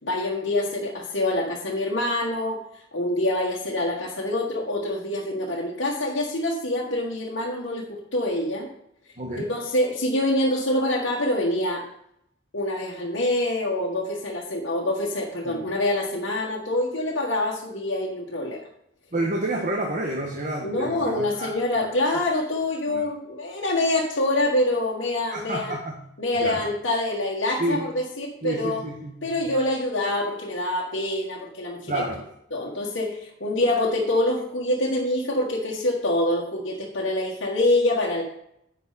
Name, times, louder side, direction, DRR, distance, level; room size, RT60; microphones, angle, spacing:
voice 1, 0.0-8.7 9.4-11.9 12.5-18.6 20.6-25.8 26.2-28.8 29.2-32.0 32.5-38.2, left 1 dB, 65° left, -5 dB, 1.7 m, -25 dB
voice 2, 9.2-9.5 15.4-15.7 19.1-21.9 22.9-23.1 25.3-26.0 26.3-26.6 27.6-27.9 28.4-29.5 31.9-32.2, right 1 dB, 40° right, 0 dB, 1.3 m, -30 dB
10.5 x 8.4 x 4.2 m, 0.76 s
head